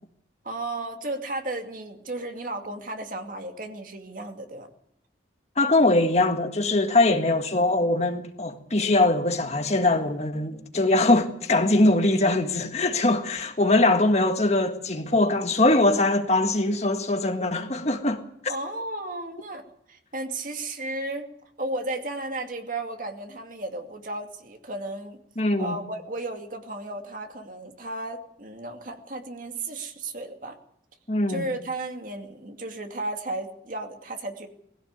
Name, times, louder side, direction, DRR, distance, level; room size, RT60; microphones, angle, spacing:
voice 1, 0.4-4.7 18.5-19.6 19.9-21.3 21.6-25.2 25.6-30.6 31.3-34.5, right 2 dB, 45° right, 2.4 m, -34 dB
voice 2, 5.6-18.2 25.4-25.8 31.1-31.4, left 2 dB, 35° left, 1.8 m, -22 dB
20.5 x 16.0 x 8.1 m
head